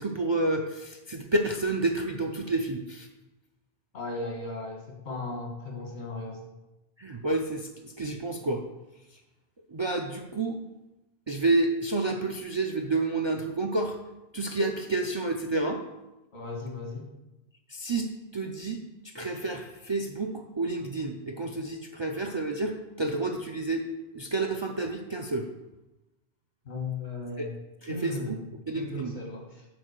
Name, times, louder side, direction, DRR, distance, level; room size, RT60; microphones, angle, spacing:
voice 1, 0.0-3.1 7.0-8.6 9.7-10.6 11.3-14.0 14.3-15.8 17.7-23.9 24.1-25.5 27.4-27.5 27.8-28.4 28.7-29.1, right 2 dB, 40° right, 4 dB, 0.4 m, -29 dB
voice 2, 3.9-6.5 16.3-17.1 26.7-27.6 27.9-28.5 28.7-29.7, left 3 dB, 85° left, 0 dB, 1.9 m, -36 dB
6.1 x 4.5 x 6.4 m, 0.99 s
omnidirectional pair, 1.1 m